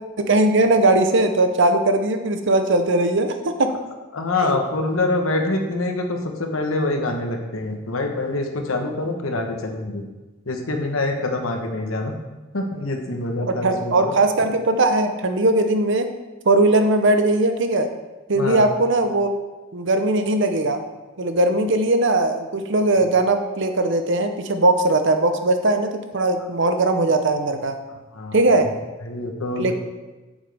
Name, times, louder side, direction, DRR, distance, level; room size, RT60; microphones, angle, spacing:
voice 1, 0.2-3.7 4.4-4.6 13.5-16.1 16.4-17.9 18.3-19.3 19.7-20.8 21.2-27.8 28.3-28.7 29.6-29.7, right 2 dB, 60° right, 7 dB, 0.8 m, -19 dB
voice 2, 4.1-10.0 10.5-12.1 12.5-14.1 18.3-18.7 28.1-28.5 29.0-29.7, left 2 dB, 80° left, 4 dB, 1.2 m, -25 dB
8.9 x 7.3 x 3.4 m, 1.2 s
head